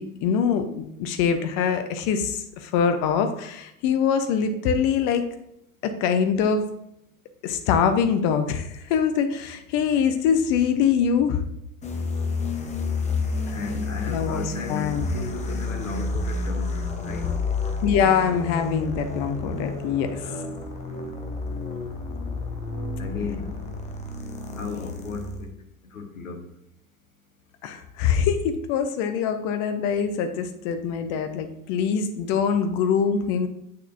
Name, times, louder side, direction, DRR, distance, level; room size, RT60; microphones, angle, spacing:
voice 1, 0.0-5.2 5.8-6.6 7.4-11.4 13.5-13.6 14.1-15.1 17.8-20.2 27.6-33.5, left 7 dB, 40° left, 8 dB, 0.7 m, -24 dB
sound 1, 11.8-25.5, left 3 dB, 15° left, 1.0 m, -30 dB
voice 2, 13.5-17.3 19.8-20.6 23.0-23.6 24.4-25.5 25.8-26.5, left 4 dB, 70° left, 5 dB, 1.3 m, -36 dB
8.5 x 6.6 x 2.7 m, 0.79 s
figure-of-eight pair, 80°, 42 cm